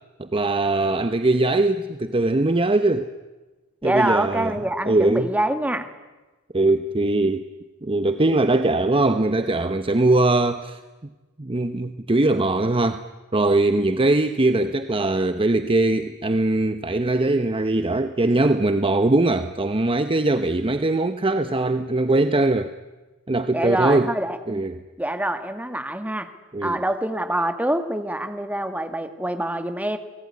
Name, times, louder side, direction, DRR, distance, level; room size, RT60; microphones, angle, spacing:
voice 1, 0.2-3.1 3.8-4.5 4.9-5.3 6.5-7.4 7.8-10.8 11.4-13.0 13.3-22.7 23.3-24.1 24.5-24.7 26.5-26.8, right 2 dB, 25° right, 9 dB, 0.9 m, -21 dB
voice 2, 3.8-5.9 23.5-24.6 25.0-26.3 26.6-30.0, right 1 dB, 5° right, 8 dB, 1.8 m, -25 dB
30.0 x 19.5 x 9.6 m, 1.2 s
head